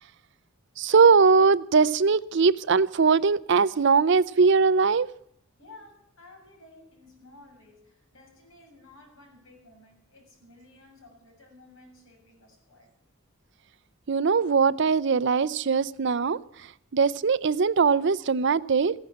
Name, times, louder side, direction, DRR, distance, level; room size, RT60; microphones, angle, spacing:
voice 1, 0.8-5.1 14.1-16.4 16.9-18.9, right 5 dB, 60° right, 17 dB, 0.5 m, -21 dB
voice 2, 5.6-13.1, left 2 dB, 75° left, 0 dB, 7.3 m, -53 dB
15.5 x 10.5 x 8.5 m, 0.67 s
head